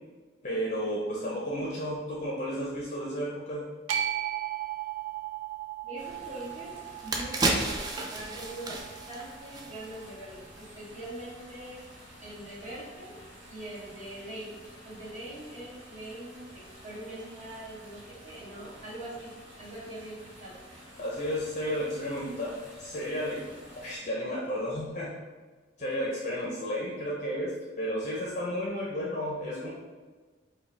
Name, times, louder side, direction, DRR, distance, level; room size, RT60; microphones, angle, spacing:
voice 1, 0.4-3.7 21.0-22.5 22.8-23.4 23.8-25.2 25.8-29.7, equal, 40° left, -4 dB, 0.6 m, -32 dB
sound 1, 3.9-10.1, right 11 dB, 90° right, 0.4 m, -37 dB
voice 2, 5.8-6.7 7.0-7.8 8.1-8.8 9.1-11.8 12.2-13.2 13.5-14.6 14.8-19.3 19.6-20.6, right 1 dB, 40° right, -11 dB, 1.5 m, -42 dB
sound 2, 6.0-24.0, equal, 65° right, 1.3 m, -50 dB
sound 3, 6.4-6.5 6.9-10.2 10.5-10.6, right 2 dB, 20° right, 0.3 m, -32 dB
4.7 x 2.2 x 3.3 m, 1.4 s
head